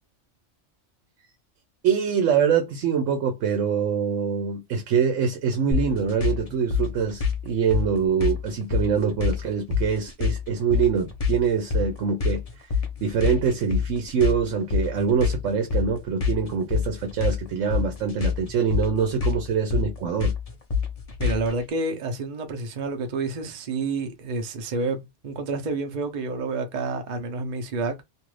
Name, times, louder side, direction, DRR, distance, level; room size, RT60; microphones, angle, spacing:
voice 1, 1.8-12.7 13.0-20.3, right 7 dB, 85° right, 1.0 m, -24 dB
sound 1, 5.7-21.6, left 6 dB, 35° left, 0.7 m, -27 dB
voice 2, 21.2-28.0, right 3 dB, 45° right, 0.7 m, -29 dB
2.7 x 2.4 x 3.1 m
omnidirectional pair, 1.2 m